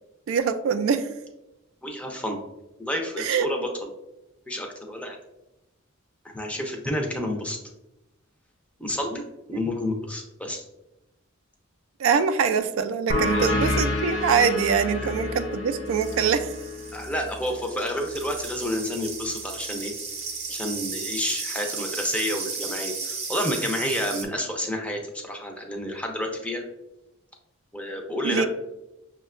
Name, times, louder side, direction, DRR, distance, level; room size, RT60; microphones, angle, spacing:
voice 1, 0.3-1.1 3.2-3.5 12.0-16.5 28.2-28.5, right 6 dB, 80° right, 10 dB, 0.3 m, -23 dB
voice 2, 1.8-2.4 2.8-3.9 4.5-5.2 6.2-7.6 8.8-9.2 9.5-10.7 13.3-13.5 15.0-15.1 16.9-19.9 20.5-26.6 27.7-28.5, left 1 dB, 5° left, 2 dB, 0.4 m, -30 dB
sound 1, 13.1-18.3, left 1 dB, 70° left, 0.8 m, -29 dB
sound 2, 15.9-24.2, right 4 dB, 30° right, 0.7 m, -35 dB
6.0 x 2.2 x 2.4 m, 0.93 s
head